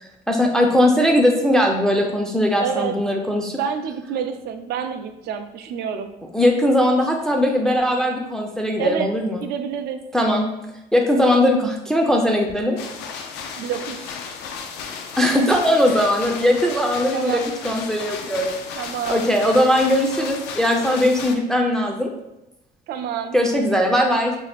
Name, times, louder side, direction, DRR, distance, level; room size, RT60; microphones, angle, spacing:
voice 1, 0.0-3.6 6.3-9.4 10.1-10.5 10.9-12.8 15.2-18.5 19.1-22.1 23.3-24.3, left 1 dB, 5° left, 1 dB, 0.3 m, -19 dB
voice 2, 2.6-2.9 3.6-6.1 8.8-9.1 9.4-10.0 13.6-14.1 17.1-17.5 18.8-19.3 22.9-23.4, right 8 dB, 70° right, 8 dB, 0.4 m, -27 dB
sound 1, 12.8-21.3, left 6 dB, 85° left, 0.4 m, -34 dB
2.6 x 2.3 x 3.3 m, 0.90 s
cardioid pair, 110°, 17 cm